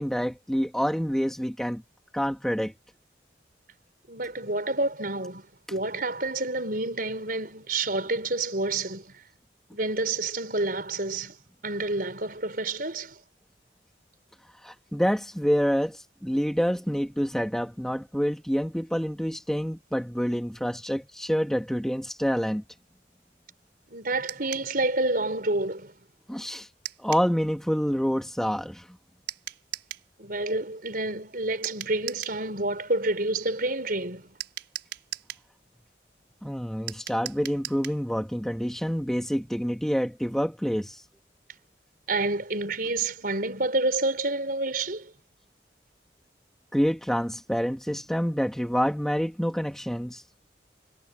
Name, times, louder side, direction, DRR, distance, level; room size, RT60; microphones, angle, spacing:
voice 1, 0.0-1.8 2.1-2.7 14.6-22.6 26.3-26.7 27.0-29.0 36.4-41.0 46.7-50.2, equal, 5° left, 1.9 m, -27 dB
voice 2, 4.1-9.2 9.7-11.4 11.6-13.2 23.9-25.9 30.2-34.4 42.1-45.1, right 2 dB, 50° right, 5.2 m, -29 dB
sound 1, 24.3-24.7 26.8-27.3 29.3-30.1 31.6-32.4 34.4-35.5 36.9-38.0, right 12 dB, 75° right, 5.2 m, -38 dB
head